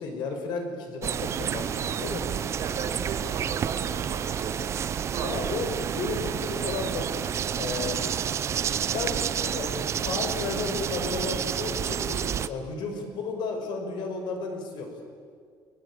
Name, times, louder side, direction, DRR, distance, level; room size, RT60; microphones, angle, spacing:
voice 1, 0.0-2.4 5.2-7.1 7.6-8.0 8.9-9.8 10.0-14.9, left 4 dB, 65° left, 4 dB, 5.7 m, -33 dB
sound 1, 1.0-12.5, right 8 dB, 35° right, 0.8 m, -29 dB
voice 2, 2.6-4.6 5.1-5.6, right 5 dB, 55° right, 1 dB, 5.3 m, -36 dB
30.0 x 19.5 x 8.9 m, 2.1 s
cardioid pair, 165°, 8 cm